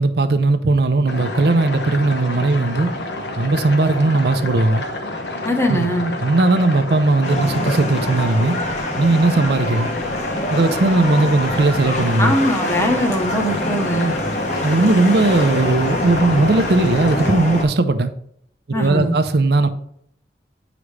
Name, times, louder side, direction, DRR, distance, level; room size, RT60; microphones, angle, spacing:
voice 1, 0.0-2.9 3.4-4.8 5.7-5.9 6.2-8.6 9.0-9.9 10.5-12.3 14.6-18.1 18.7-19.7, right 2 dB, 65° right, 0.6 m, -17 dB
sound 1, 1.1-17.3, left 2 dB, 75° left, 1.1 m, -29 dB
voice 2, 5.4-6.1 12.2-14.1 18.7-19.2, equal, 15° left, 1.0 m, -21 dB
sound 2, 7.2-17.6, left 1 dB, 40° left, 1.1 m, -25 dB
8.3 x 5.0 x 3.3 m
head